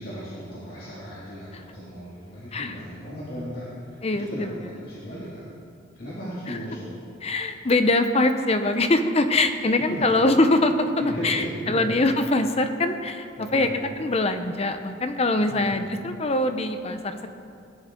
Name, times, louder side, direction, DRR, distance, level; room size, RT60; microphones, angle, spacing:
voice 1, 0.0-5.4 6.0-6.9 9.9-10.1 11.0-11.9 13.4-13.7 15.4-15.7, equal, 50° left, -8 dB, 2.2 m, -36 dB
voice 2, 4.0-4.6 6.5-6.6 7.2-10.9 11.2-13.7 14.0-17.3, left 2 dB, 30° left, 8 dB, 0.7 m, -23 dB
18.0 x 11.0 x 3.7 m, 2.4 s
head